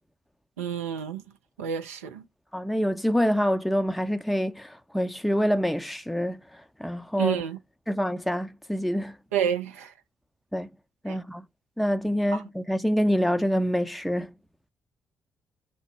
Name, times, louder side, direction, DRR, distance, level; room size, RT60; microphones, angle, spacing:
voice 1, 0.6-1.2 1.6-2.2 7.2-7.6 9.3-9.9 11.1-11.2 12.3-12.4, right 9 dB, 85° right, 0.6 m, -29 dB
voice 2, 2.5-6.4 6.8-7.4 7.9-9.2 10.5-10.7 11.0-11.4 11.8-14.3, equal, ahead, 0.4 m, -26 dB
5.4 x 2.1 x 4.5 m
figure-of-eight pair, 40°, 8 cm